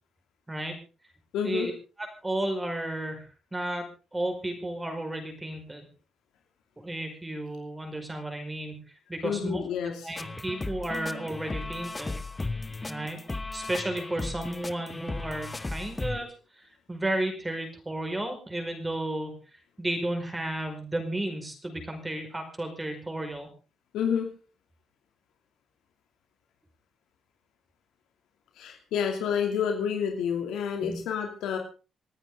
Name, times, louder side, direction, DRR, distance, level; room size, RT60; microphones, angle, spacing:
voice 1, 1.3-1.7 9.2-10.1 23.9-24.3 28.6-31.6, left 7 dB, 85° left, 3 dB, 2.7 m, -29 dB
voice 2, 2.0-3.9 4.1-5.9 6.8-8.8 9.1-9.6 10.0-12.2 12.9-13.2 13.5-16.3 16.6-16.7 16.9-19.3 19.8-23.5 30.8-31.0, right 1 dB, 15° right, 5 dB, 5.0 m, -33 dB
sound 1, 10.2-16.2, left 3 dB, 20° left, 0.9 m, -36 dB
27.0 x 9.2 x 3.8 m, 0.34 s
cardioid pair, 90°, 0 cm